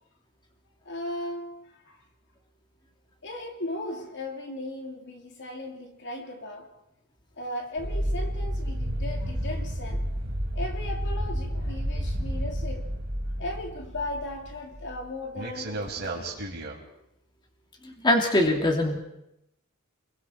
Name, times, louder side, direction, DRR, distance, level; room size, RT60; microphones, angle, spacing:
voice 1, 0.8-2.0 3.2-6.7 7.4-10.0 10.5-12.9 13.4-16.4, left 1 dB, 55° left, 3 dB, 2.8 m, -37 dB
sound 1, 7.8-15.0 15.4-16.8, equal, 50° right, 4.0 m, -31 dB
voice 2, 17.8-19.0, left 1 dB, 20° left, 2 dB, 2.5 m, -23 dB
29.5 x 22.0 x 4.4 m, 0.83 s
head